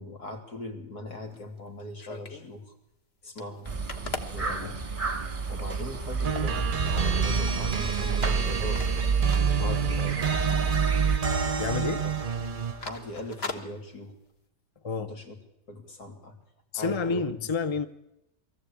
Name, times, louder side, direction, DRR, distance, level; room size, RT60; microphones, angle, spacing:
voice 1, 0.0-2.7 3.2-3.7 4.3-4.7 5.5-6.7 6.9-8.9 9.6-10.7 12.0-12.1 12.8-14.1 15.0-15.4 15.7-16.3 16.7-17.3, left 1 dB, 75° left, 3 dB, 3.5 m, -40 dB
sound 1, 1.2-2.5 2.9-3.0 3.2-5.4 5.9-6.0 6.3-6.8 7.2-8.2 8.5-10.3 10.5-10.7 11.1-11.5 11.8-12.0 12.4-14.4, left 3 dB, 40° left, 1.7 m, -41 dB
sound 2, 3.7-11.2, right 5 dB, 25° right, 1.2 m, -29 dB
sound 3, 6.2-12.9, right 6 dB, 40° right, 0.9 m, -29 dB
voice 2, 11.6-12.0 14.8-15.1 16.7-17.9, left 4 dB, 25° left, 12 dB, 0.8 m, -29 dB
22.5 x 15.0 x 8.7 m, 0.88 s
omnidirectional pair, 1.7 m